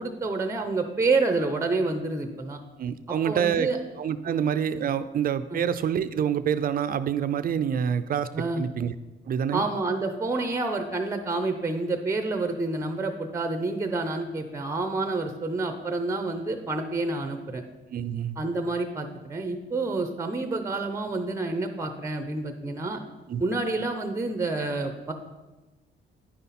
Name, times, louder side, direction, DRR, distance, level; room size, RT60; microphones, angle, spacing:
voice 1, 0.0-2.6 3.2-3.8 4.3-4.4 5.5-5.6 8.3-8.6 9.5-17.6 18.4-23.0 23.4-25.1, right 3 dB, 15° right, 7 dB, 0.7 m, -28 dB
voice 2, 2.8-3.7 4.0-8.3 8.6-8.9 9.3-9.7 17.9-18.4 23.3-23.4, right 8 dB, 45° right, 13 dB, 0.5 m, -27 dB
9.7 x 5.5 x 4.2 m, 1.1 s
cardioid pair, 90°, 20 cm